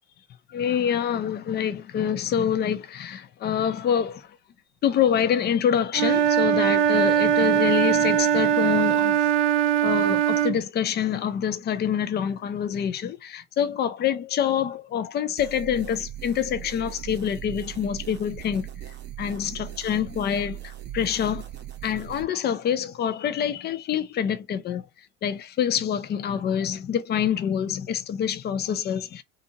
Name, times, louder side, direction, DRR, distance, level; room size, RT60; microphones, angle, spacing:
voice 1, 0.5-4.3 4.8-9.2 9.8-18.7 19.2-21.5 21.8-24.9 25.2-29.2, left 8 dB, 25° left, 0.4 m, -26 dB
Wind instrument woodwind instrument, 5.9-10.6, right 9 dB, 65° right, 0.5 m, -21 dB
sound 1, 15.4-22.2, right 12 dB, 25° right, 0.7 m, -39 dB
2.6 x 2.5 x 2.7 m
hypercardioid pair, 75°, 41 cm